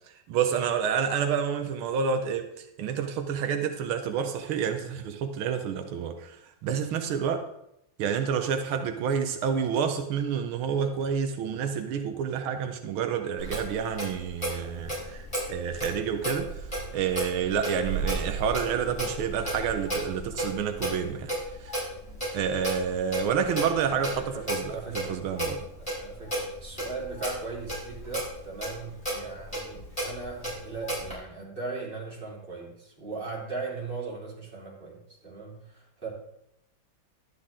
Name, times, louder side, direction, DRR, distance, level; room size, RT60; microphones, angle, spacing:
voice 1, 0.3-7.4 8.0-15.2 15.5-21.3 21.6-21.7 22.3-25.6, right 7 dB, 85° right, 6 dB, 1.7 m, -29 dB
Clock, 13.4-31.1, right 1 dB, 15° left, 5.4 m, -34 dB
voice 2, 24.0-25.2 25.8-36.1, right 4 dB, 25° right, -4 dB, 3.3 m, -38 dB
12.0 x 10.0 x 3.7 m, 0.80 s
omnidirectional pair, 2.3 m